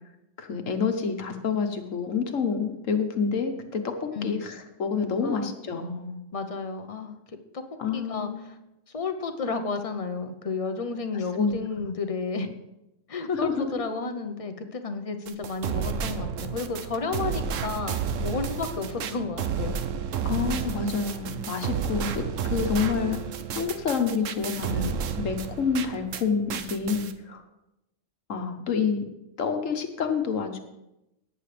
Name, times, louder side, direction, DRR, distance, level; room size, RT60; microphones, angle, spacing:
voice 1, 0.4-6.2 7.8-8.4 11.1-11.9 13.3-13.7 20.2-23.2 23.5-27.4 28.3-29.0 29.4-30.6, left 6 dB, 75° left, 6 dB, 1.5 m, -28 dB
voice 2, 5.2-5.6 6.3-7.2 7.5-7.6 7.9-8.5 8.9-12.5 13.1-19.8, left 4 dB, 30° left, 7 dB, 0.8 m, -32 dB
sound 1, 15.3-26.2 26.5-27.1, right 7 dB, 75° right, 1.1 m, -31 dB
18.0 x 8.1 x 3.4 m, 0.91 s
omnidirectional pair, 1.3 m